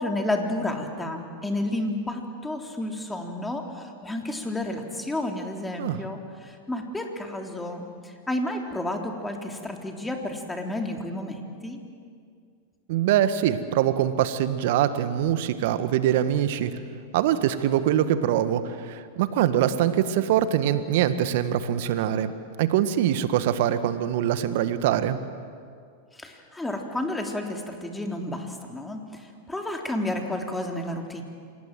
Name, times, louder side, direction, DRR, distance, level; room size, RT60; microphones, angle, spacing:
voice 1, 0.0-11.8 26.1-31.2, left 1 dB, 10° left, 2 dB, 3.5 m, -31 dB
voice 2, 12.9-16.7 17.1-22.3 22.6-25.2, right 11 dB, 60° right, 11 dB, 1.5 m, -23 dB
27.0 x 19.5 x 7.6 m, 2.2 s
hypercardioid pair, 95°, 0 cm